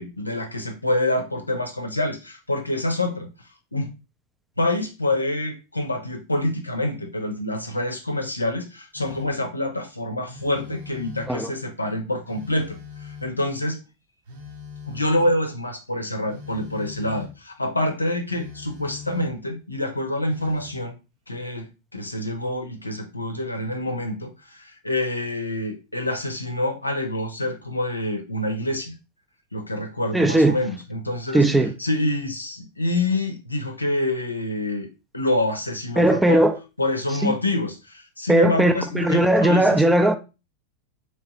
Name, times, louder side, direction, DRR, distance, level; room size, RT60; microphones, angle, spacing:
voice 1, 0.0-3.3 3.7-3.9 4.6-13.8 14.9-21.0 21.3-21.7 21.9-28.9 29.5-31.4 31.8-34.9 35.1-36.5 36.8-39.8, left 1 dB, 85° left, 0.6 m, -26 dB
Telephone, 8.9-9.5 10.2-11.5 12.2-13.5 14.3-15.5 16.3-17.4 18.3-19.5 20.3-20.8, left 5 dB, 55° right, 0.8 m, -41 dB
voice 2, 30.1-30.6 31.3-31.7 36.0-36.6 37.2-37.3 38.3-40.2, right 1 dB, 5° right, 0.4 m, -18 dB
3.2 x 3.2 x 2.8 m
figure-of-eight pair, 90°, 0 cm